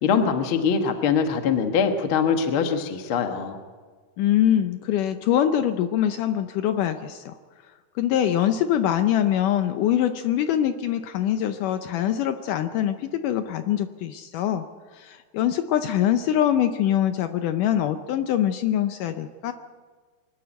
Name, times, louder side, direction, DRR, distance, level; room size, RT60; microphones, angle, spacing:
voice 1, 0.0-3.6, left 6 dB, 60° left, 5 dB, 1.3 m, -23 dB
voice 2, 4.2-7.4 8.0-14.6 14.9-19.5, left 10 dB, 85° left, 8 dB, 1.8 m, -23 dB
24.0 x 13.0 x 9.1 m, 1.5 s
omnidirectional pair, 4.6 m